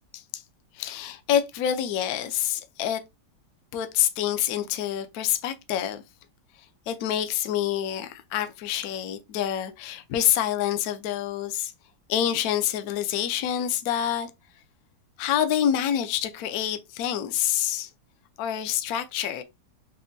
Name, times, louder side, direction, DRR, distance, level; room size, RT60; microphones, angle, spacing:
voice 1, 0.8-3.0 3.7-6.0 6.9-11.7 12.1-14.3 15.2-17.9 18.4-19.4, left 10 dB, 70° left, 0.9 m, -27 dB
6.2 x 2.2 x 2.6 m
omnidirectional pair, 2.1 m